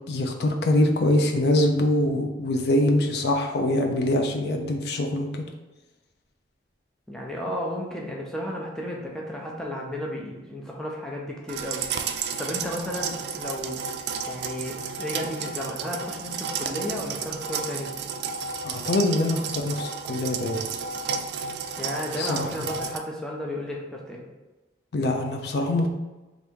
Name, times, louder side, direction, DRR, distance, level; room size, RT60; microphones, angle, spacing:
voice 1, 0.1-5.4 18.6-20.6 22.2-22.5 24.9-25.9, left 1 dB, 60° left, 4 dB, 0.5 m, -24 dB
voice 2, 7.1-11.8 12.1-13.8 14.3-17.9 21.8-24.2, equal, 5° left, -2 dB, 0.5 m, -33 dB
sound 1, 11.5-23.0, right 6 dB, 65° right, 0.3 m, -32 dB
3.4 x 2.6 x 4.5 m, 1.1 s
head